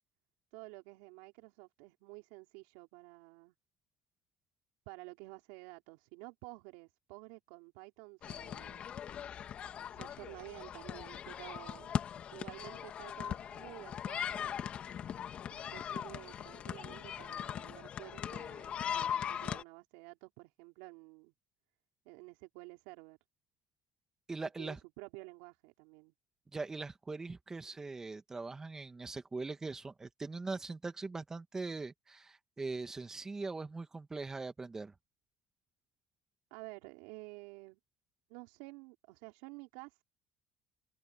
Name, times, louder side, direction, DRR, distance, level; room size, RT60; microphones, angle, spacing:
voice 1, 0.5-3.5 4.9-8.8 9.8-11.9 12.3-14.5 15.5-21.3 22.0-23.2 24.6-26.1 36.5-37.8 38.3-40.0, right 26 dB, 85° right, 4.5 m, -51 dB
sound 1, 8.2-19.6, left 9 dB, 50° left, 2.3 m, -40 dB
voice 2, 24.3-24.8 26.5-34.9, right 3 dB, 20° right, 2.1 m, -41 dB
open air
supercardioid pair, 95°, 3 cm